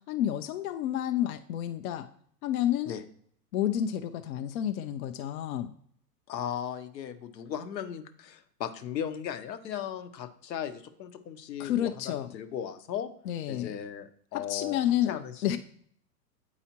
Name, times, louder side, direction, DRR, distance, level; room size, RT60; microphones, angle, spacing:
voice 1, 0.0-2.1 2.4-3.0 3.5-5.7 11.6-12.3 13.3-13.8 14.3-15.2 15.4-15.6, left 11 dB, 60° left, 8 dB, 0.5 m, -30 dB
voice 2, 6.3-13.1 13.5-14.8 15.1-15.6, left 9 dB, 85° left, 9 dB, 0.9 m, -37 dB
8.3 x 4.8 x 2.9 m, 0.63 s
hypercardioid pair, 140°, 49 cm